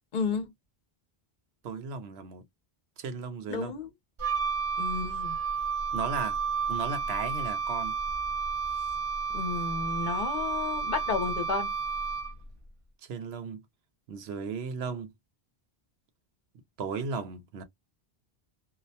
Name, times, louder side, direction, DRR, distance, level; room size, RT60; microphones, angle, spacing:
voice 1, 0.1-0.5 3.5-3.9 4.8-5.4 9.3-11.7, left 5 dB, 55° left, 0.8 m, -32 dB
voice 2, 1.6-2.4 3.0-3.7 5.9-6.4 6.7-7.9 13.1-13.6 14.1-15.1 16.8-17.6, right 5 dB, 85° right, 0.9 m, -35 dB
Wind instrument woodwind instrument, 4.2-12.5, right 5 dB, 45° right, 0.4 m, -31 dB
2.3 x 2.1 x 2.6 m
omnidirectional pair, 1.1 m